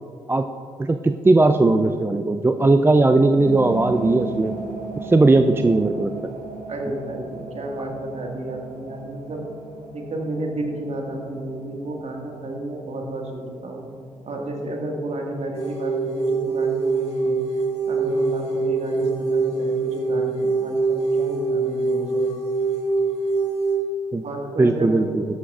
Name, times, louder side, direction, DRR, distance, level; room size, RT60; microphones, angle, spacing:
voice 1, 0.8-4.6 5.0-6.1 24.1-24.2 24.6-25.3, right 2 dB, 15° right, 8 dB, 0.4 m, -18 dB
sound 1, 3.4-15.2, right 3 dB, 60° right, 1.2 m, -37 dB
voice 2, 6.7-9.5 9.9-13.9 14.3-17.4 17.9-22.3 24.2-25.0, right 1 dB, 45° right, 1 dB, 1.8 m, -31 dB
sound 2, 15.5-23.7, right 3 dB, 45° left, 2.2 m, -24 dB
13.0 x 9.7 x 2.5 m, 2.5 s
hypercardioid pair, 45°, 15 cm